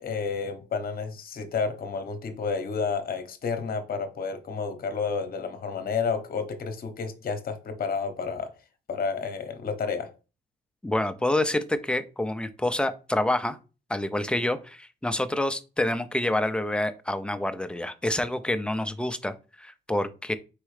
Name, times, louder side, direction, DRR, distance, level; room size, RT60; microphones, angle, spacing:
voice 1, 0.0-8.5 8.9-10.1, left 5 dB, 50° left, 0.9 m, -30 dB
voice 2, 10.8-13.6 13.9-20.3, left 1 dB, 5° left, 0.5 m, -27 dB
4.7 x 3.0 x 3.2 m
cardioid pair, 90°, 20 cm